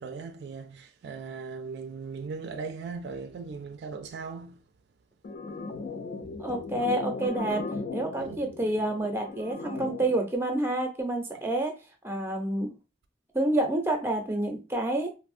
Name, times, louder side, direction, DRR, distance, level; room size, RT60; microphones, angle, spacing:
voice 1, 0.0-4.6 8.2-8.4, right 5 dB, 65° right, 0.3 m, -38 dB
sound 1, 5.2-10.2, left 3 dB, 50° left, 0.3 m, -37 dB
voice 2, 6.4-7.6 7.9-11.7 12.0-12.7 13.3-15.1, right 1 dB, 15° right, 0.6 m, -28 dB
3.3 x 2.0 x 2.4 m
head